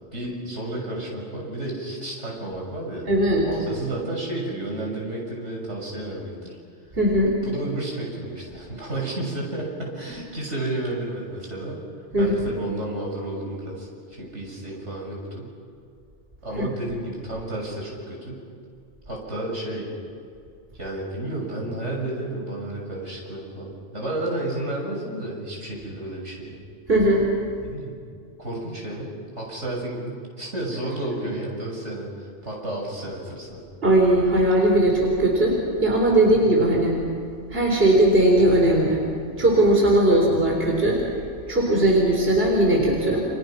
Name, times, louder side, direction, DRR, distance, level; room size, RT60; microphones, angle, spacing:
voice 1, 0.1-3.1 3.4-6.6 7.4-11.8 12.2-15.5 16.4-18.4 19.1-19.9 20.7-26.6 27.6-28.0 28.4-33.6 40.1-40.3, right 1 dB, 80° right, -2 dB, 7.3 m, -32 dB
voice 2, 3.1-3.5 7.0-7.3 12.1-12.5 16.5-16.7 26.9-27.3 33.8-37.0 37.5-39.0 39.4-41.0 41.5-43.3, right 1 dB, 55° right, -1 dB, 4.3 m, -19 dB
30.0 x 28.5 x 6.0 m, 2.4 s
omnidirectional pair, 1.2 m